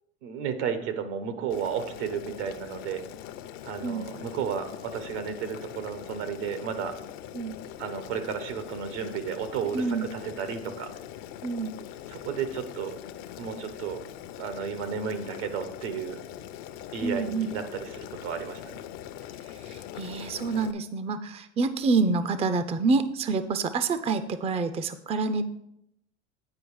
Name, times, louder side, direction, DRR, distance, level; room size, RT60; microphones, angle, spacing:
voice 1, 0.2-3.0 3.6-6.9 7.8-10.9 12.1-12.9 13.4-14.0 14.4-16.2 16.9-18.8, right 7 dB, 80° right, 9 dB, 1.2 m, -33 dB
Boiling, 1.5-20.7, left 11 dB, 60° left, 0.7 m, -42 dB
voice 2, 9.7-10.0 11.4-11.7 17.0-17.5 19.6-25.4, right 4 dB, 20° right, 12 dB, 0.4 m, -27 dB
9.5 x 4.8 x 4.7 m, 0.77 s
supercardioid pair, 100°, 34 cm